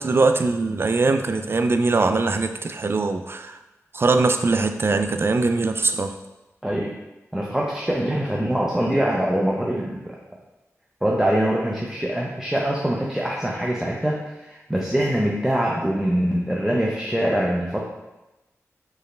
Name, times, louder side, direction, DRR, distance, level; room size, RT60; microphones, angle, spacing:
voice 1, 0.0-3.5 3.9-6.1, right 3 dB, 45° right, 7 dB, 0.4 m, -21 dB
voice 2, 6.6-6.9 7.3-10.2 11.0-17.8, right 1 dB, 5° right, -3 dB, 0.6 m, -23 dB
4.5 x 3.2 x 3.2 m, 1.0 s
cardioid pair, 55°, 6 cm